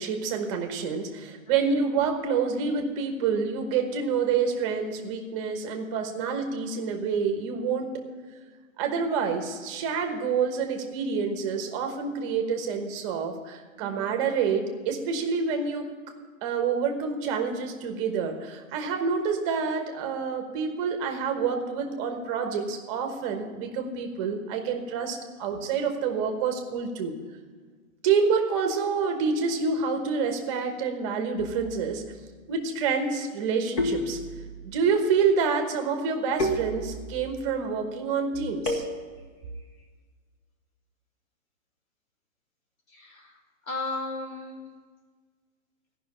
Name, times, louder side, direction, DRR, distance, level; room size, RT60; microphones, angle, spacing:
voice 1, 0.0-7.9 8.8-15.9 16.4-27.2 28.0-32.0 32.5-34.2 34.6-38.8, right 5 dB, 25° right, 5 dB, 1.2 m, -27 dB
voice 2, 1.5-1.8 13.8-14.2 39.2-39.3 39.5-39.9 42.9-44.7, left 2 dB, 80° left, -3 dB, 3.4 m, -37 dB
sound 1, 31.4-31.9 33.8-34.7 36.4-37.3 38.7-39.4, left 1 dB, 25° left, 1.2 m, -31 dB
14.5 x 5.9 x 9.7 m, 1.5 s
hypercardioid pair, 160°, 40 cm